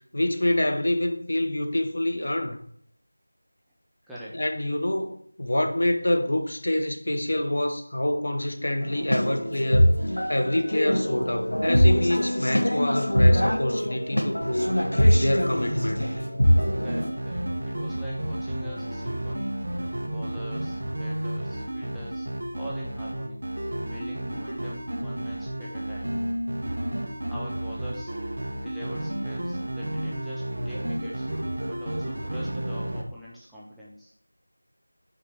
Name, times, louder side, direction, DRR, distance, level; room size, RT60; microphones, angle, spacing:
voice 1, 0.1-2.6 4.4-9.9 10.3-14.8 15.2-16.1, left 1 dB, 55° left, 1.0 m, -26 dB
voice 2, 4.1-4.4 16.8-19.5 20.0-22.3 22.5-23.5 23.8-26.2 27.0-28.1 28.5-31.3 31.7-34.1, equal, ahead, 0.6 m, -43 dB
sound 1, 8.8-17.1, equal, 80° left, 1.3 m, -23 dB
sound 2, 14.4-33.0, right 1 dB, 50° right, 1.3 m, -32 dB
6.5 x 5.0 x 4.2 m
figure-of-eight pair, 170°, 0 cm